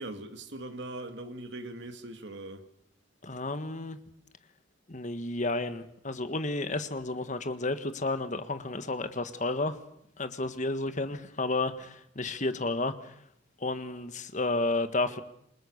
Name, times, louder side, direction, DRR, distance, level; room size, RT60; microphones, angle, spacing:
voice 1, 0.0-2.6, right 2 dB, 65° right, 2.5 m, -40 dB
voice 2, 3.2-4.0 4.9-9.8 10.2-13.1 13.6-15.2, left 2 dB, 40° left, 1.6 m, -31 dB
28.0 x 20.0 x 6.6 m
head